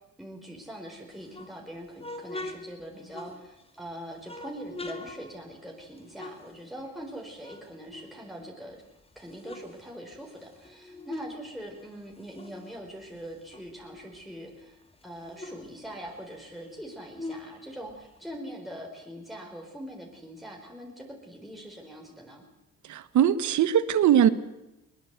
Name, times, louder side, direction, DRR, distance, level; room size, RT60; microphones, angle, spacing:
voice 1, 0.0-8.8 9.2-22.4, equal, ahead, -1 dB, 4.4 m, -43 dB
sound 1, 1.1-3.8 4.2-7.1 7.4-8.7 9.1-11.4 11.7-14.2 14.6-14.7 14.9-18.4, left 2 dB, 20° left, 2.5 m, -43 dB
voice 2, 22.8-24.3, right 10 dB, 75° right, 15 dB, 1.4 m, -21 dB
21.5 x 19.5 x 8.1 m, 0.92 s
cardioid pair, 90°, 30 cm